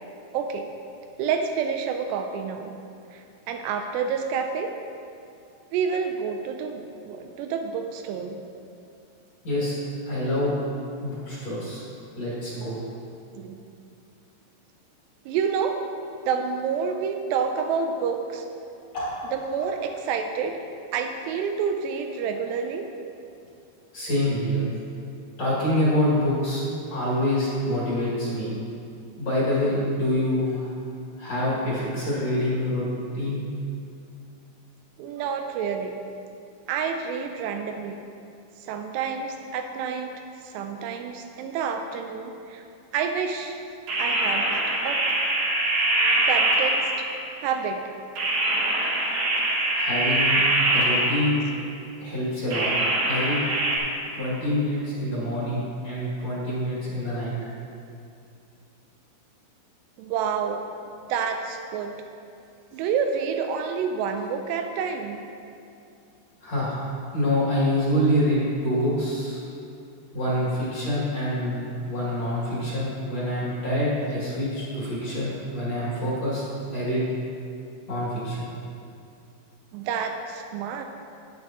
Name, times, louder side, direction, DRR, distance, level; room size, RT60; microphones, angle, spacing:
voice 1, 0.3-0.7 1.2-2.7 3.1-4.8 5.7-8.4 13.4-13.6 15.3-15.8 16.2-18.5 19.3-20.6 20.9-22.9 35.0-35.9 36.7-38.0 38.6-40.1 40.4-42.6 42.9-43.6 44.0-45.1 46.3-46.8 47.1-47.9 60.0-60.7 61.1-61.9 62.7-65.2 79.7-80.8, right 6 dB, 85° right, 5 dB, 2.6 m, -28 dB
voice 2, 10.1-10.5 11.0-11.8 12.1-12.8 18.9-19.1 23.9-24.6 25.4-26.6 26.9-28.5 29.2-30.7 31.2-32.8 33.1-33.5 49.7-50.4 50.7-51.4 52.0-52.7 53.0-53.4 54.2-57.3 66.4-69.4 70.1-76.4 76.7-77.0 77.9-78.5, left 1 dB, 45° left, -9 dB, 2.9 m, -26 dB
sound 1, 43.9-47.3 48.2-51.6 52.5-53.8, right 1 dB, 60° right, 2.7 m, -23 dB
10.5 x 9.5 x 3.0 m, 2.6 s
omnidirectional pair, 5.0 m